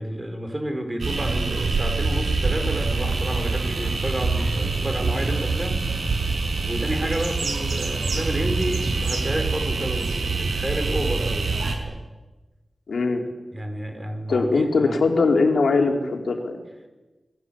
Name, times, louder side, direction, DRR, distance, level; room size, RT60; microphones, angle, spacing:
voice 1, 0.0-6.2 6.6-12.0 13.5-15.1, right 1 dB, 15° right, 5 dB, 4.9 m, -30 dB
sound 1, 1.0-11.7, right 3 dB, 75° right, 5.6 m, -25 dB
voice 2, 12.9-13.2 14.3-16.6, left 3 dB, 80° left, 2 dB, 4.2 m, -21 dB
28.5 x 22.5 x 8.8 m, 1.2 s
wide cardioid pair, 130°, 0 cm